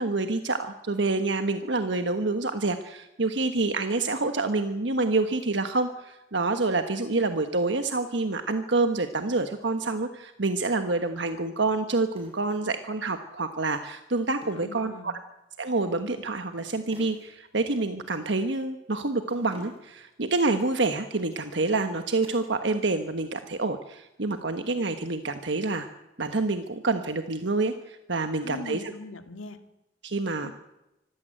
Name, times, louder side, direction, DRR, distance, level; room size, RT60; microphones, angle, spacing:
voice 1, 0.0-15.1 15.6-25.9 26.2-28.9 30.0-30.5, right 3 dB, 65° right, 7 dB, 1.3 m, -27 dB
sound 1, 8.0-8.3 9.8-10.1 12.1-12.8 14.4-14.8 16.9-17.4 17.6-17.8 19.2-20.1 22.2-22.7 22.9-23.5 25.8-26.3, right 1 dB, 30° right, 5.4 m, -52 dB
voice 2, 14.5-15.2 28.4-29.6 30.4-30.5, left 2 dB, 85° left, 7 dB, 2.2 m, -41 dB
25.0 x 16.0 x 9.0 m, 0.94 s
head